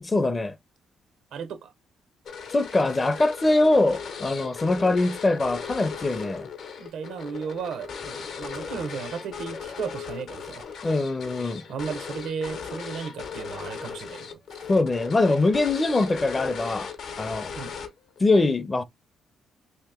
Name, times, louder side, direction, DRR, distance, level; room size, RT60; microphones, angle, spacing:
voice 1, 0.0-0.6 2.5-6.5 10.8-11.6 14.7-16.9 17.2-17.5 18.2-18.8, left 2 dB, 25° left, 0.5 m, -23 dB
voice 2, 1.3-1.7 6.8-10.7 11.7-14.4 17.5-17.7, right 6 dB, 80° right, 0.7 m, -35 dB
sound 1, 2.3-18.2, left 6 dB, 70° left, 0.7 m, -37 dB
2.8 x 2.8 x 3.5 m
cardioid pair, 90°, 0 cm